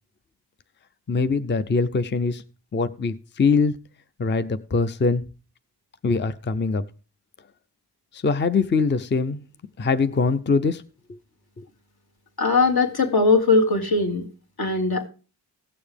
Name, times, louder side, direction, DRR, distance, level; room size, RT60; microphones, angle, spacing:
voice 1, 1.1-2.4 2.7-3.8 4.2-5.3 6.0-6.8 8.1-9.4 9.8-10.8 11.6-11.7, left 4 dB, 25° left, 12 dB, 0.5 m, -22 dB
voice 2, 12.4-14.3 14.6-15.1, left 3 dB, 60° left, 3 dB, 1.9 m, -20 dB
17.0 x 6.9 x 3.4 m, 0.35 s
wide cardioid pair, 85°, 42 cm